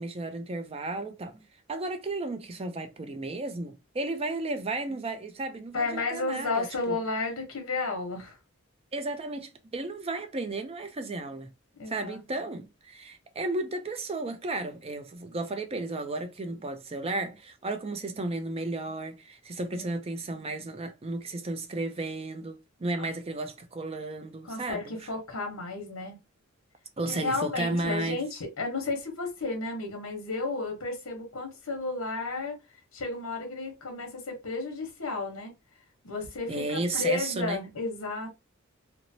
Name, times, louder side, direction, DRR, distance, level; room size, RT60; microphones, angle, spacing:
voice 1, 0.0-1.4 1.7-7.0 8.9-11.5 11.9-24.9 27.0-28.2 36.5-37.6, right 2 dB, 30° right, 0.4 m, -33 dB
voice 2, 5.7-8.4 11.8-12.2 19.7-19.9 23.0-23.1 24.4-26.2 27.1-32.6 32.9-35.5 36.0-38.3, left 3 dB, 75° left, 0.9 m, -33 dB
3.0 x 2.0 x 2.6 m
head